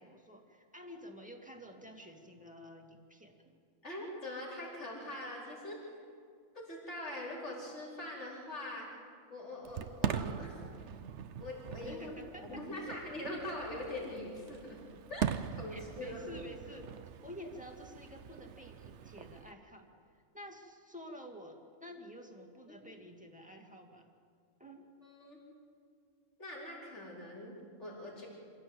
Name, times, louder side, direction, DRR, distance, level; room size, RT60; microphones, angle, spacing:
voice 1, 0.0-3.3 11.9-12.8 15.7-16.9 17.2-19.9 20.1-24.1 24.6-24.9, equal, 5° right, 2 dB, 2.1 m, -50 dB
voice 2, 3.8-6.0 6.5-8.9 9.3-10.9 11.4-14.8 15.1-16.2 22.7-22.8 25.0-25.4 26.4-27.5 27.8-28.3, left 1 dB, 55° left, -5 dB, 5.1 m, -43 dB
Fireworks, 9.6-19.5, right 8 dB, 60° right, 0.9 m, -41 dB
27.0 x 16.5 x 8.1 m, 2.2 s
omnidirectional pair, 1.5 m